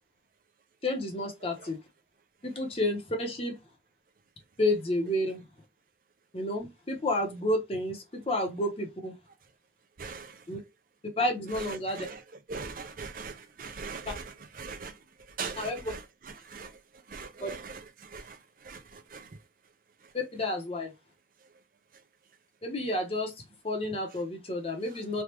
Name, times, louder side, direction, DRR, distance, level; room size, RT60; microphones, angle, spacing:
voice 1, 0.8-1.8 2.4-3.5 4.6-5.4 6.3-9.1 10.5-10.6 11.2-12.1 14.1-14.2 15.6-15.9 17.4-17.5 20.1-20.9 22.6-23.3 23.6-25.2, left 1 dB, 35° left, 0.9 m, -30 dB
voice 2, 10.0-10.4 11.5-12.2 12.5-14.9 15.4-16.0 16.5-16.7 17.1-17.8 18.1-18.4 18.6-19.3, right 4 dB, 50° right, 0.6 m, -40 dB
3.4 x 2.4 x 3.0 m
head